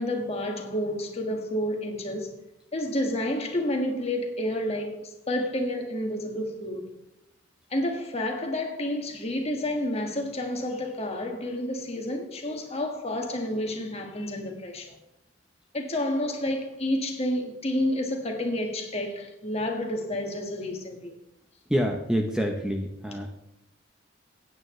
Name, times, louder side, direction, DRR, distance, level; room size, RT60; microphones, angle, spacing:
voice 1, 0.0-2.4 2.7-6.9 7.7-14.9 15.7-21.1, left 1 dB, 30° left, 1.8 m, -30 dB
voice 2, 21.7-23.3, equal, 5° right, 0.8 m, -27 dB
16.0 x 9.1 x 3.2 m
head